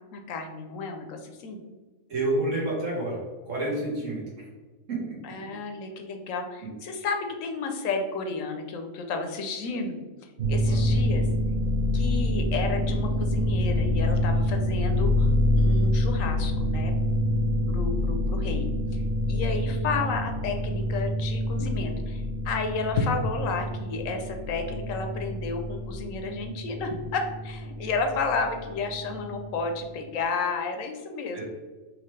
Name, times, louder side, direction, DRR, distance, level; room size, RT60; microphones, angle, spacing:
voice 1, 0.1-1.6 5.2-10.0 10.5-11.3 11.9-16.9 17.7-19.0 19.3-31.5, left 4 dB, 85° left, 5 dB, 1.1 m, -32 dB
voice 2, 2.1-3.2 3.4-4.2 4.9-5.1 10.6-10.8 31.3-31.5, right 2 dB, 75° right, -5 dB, 1.7 m, -29 dB
sound 1, 10.4-29.9, left 1 dB, 50° right, 0.8 m, -27 dB
4.9 x 3.0 x 3.2 m, 1.3 s
omnidirectional pair, 1.3 m